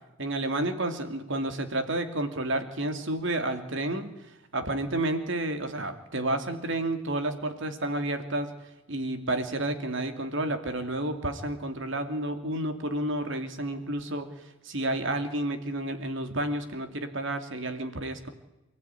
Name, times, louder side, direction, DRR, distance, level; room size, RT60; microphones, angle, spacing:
voice 1, 0.2-8.5 8.9-18.3, right 1 dB, 60° right, 7 dB, 2.8 m, -31 dB
29.0 x 16.0 x 9.8 m, 1.0 s
head